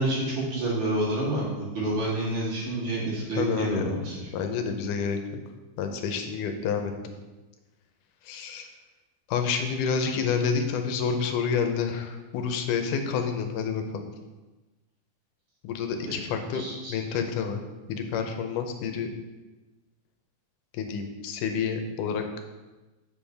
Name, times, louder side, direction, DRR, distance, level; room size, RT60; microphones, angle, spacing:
voice 1, 0.0-4.3 16.0-16.2 16.5-17.2, right 1 dB, 85° right, -6 dB, 3.8 m, -29 dB
voice 2, 3.4-4.0 4.3-5.2 5.8-6.9 8.3-8.7 9.3-14.1 15.6-16.6 16.9-17.6 17.9-19.1 20.7-22.2, left 6 dB, 90° left, 6 dB, 2.3 m, -28 dB
7.1 x 6.9 x 3.4 m, 1.2 s
omnidirectional pair, 3.6 m